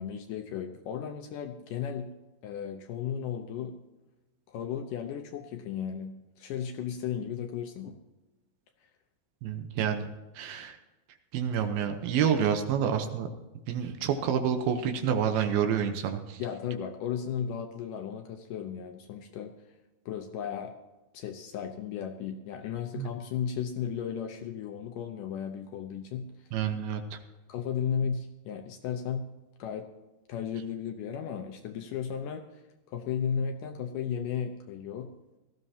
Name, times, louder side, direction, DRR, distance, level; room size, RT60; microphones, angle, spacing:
voice 1, 0.0-2.1 2.4-3.7 4.5-8.0 16.4-19.5 20.1-20.7 21.1-26.3 27.5-29.3 29.6-29.9 30.3-32.6 32.9-35.1, left 8 dB, 75° left, 5 dB, 2.0 m, -35 dB
voice 2, 9.4-10.1 10.4-10.8 11.3-13.3 13.7-16.4 23.0-23.1 26.5-27.2, right 8 dB, 75° right, 6 dB, 2.7 m, -28 dB
18.0 x 14.0 x 2.8 m, 1.1 s
omnidirectional pair, 4.5 m